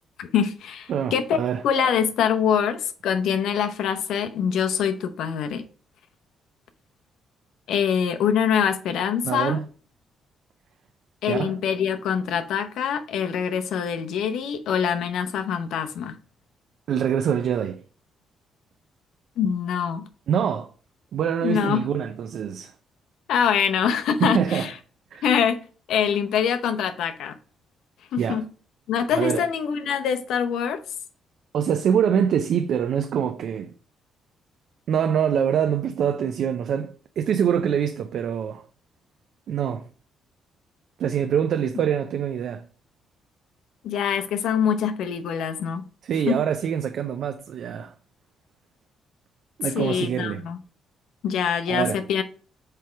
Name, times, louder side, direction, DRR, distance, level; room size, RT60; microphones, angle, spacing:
voice 1, 0.2-1.4 1.6-5.6 7.7-9.6 11.2-16.2 19.4-20.1 21.4-21.9 23.3-24.7 25.2-25.6 25.9-27.3 28.1-28.5 28.9-30.8 43.8-45.8 46.3-46.4 49.7-50.6 51.2-52.2, left 7 dB, 80° left, 0.8 m, -24 dB
voice 2, 0.9-1.6 9.2-9.6 11.3-11.6 16.9-17.8 20.3-20.7 21.1-22.7 24.2-24.7 25.1-25.3 28.2-28.4 29.1-29.4 31.5-33.7 34.9-38.6 39.5-39.8 41.0-42.6 46.0-47.9 49.6-50.4 51.7-52.0, right 8 dB, 70° right, 0.5 m, -24 dB
7.7 x 3.3 x 4.6 m
cardioid pair, 90°, 0 cm